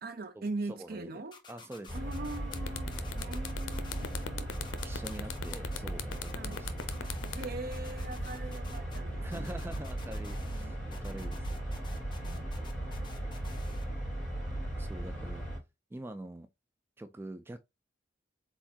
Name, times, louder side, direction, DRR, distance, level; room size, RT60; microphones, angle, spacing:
voice 1, 0.0-1.4 1.9-4.5 6.3-6.7 7.3-9.7 10.4-10.8 12.2-12.6, right 2 dB, 55° right, 0.7 m, -41 dB
voice 2, 0.8-1.1 1.5-2.0 4.8-6.7 9.2-11.5 14.8-15.4 15.9-16.5 17.0-17.6, right 1 dB, 10° right, 0.3 m, -44 dB
sound 1, 1.3-2.6 2.9-4.2 4.5-5.8 6.1-7.5 7.7-9.0 9.3-10.6 10.9-13.8, left 5 dB, 25° left, 0.9 m, -52 dB
sound 2, 1.9-15.6, right 1 dB, 5° left, 3.1 m, -37 dB
sound 3, 2.0-2.2 2.5-8.6, left 7 dB, 90° left, 0.6 m, -40 dB
4.3 x 3.9 x 2.8 m
head